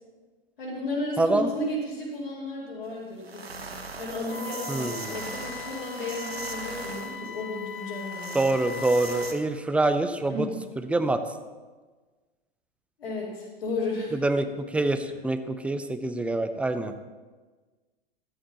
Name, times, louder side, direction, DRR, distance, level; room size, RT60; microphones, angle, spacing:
voice 1, 0.6-3.7 4.0-8.4 10.3-10.5 13.0-14.2, left 2 dB, 70° left, -8 dB, 4.4 m, -33 dB
voice 2, 1.2-1.5 4.7-5.2 8.3-10.5 10.8-11.2 14.1-16.9, right 2 dB, 5° right, 9 dB, 0.7 m, -26 dB
sound 1, 2.8-2.9 3.2-9.3, right 4 dB, 85° right, 1.2 m, -40 dB
Wind instrument woodwind instrument, 4.3-9.3, left 7 dB, 55° left, 2.3 m, -39 dB
14.5 x 13.0 x 3.1 m, 1.3 s
figure-of-eight pair, 100°, 30 cm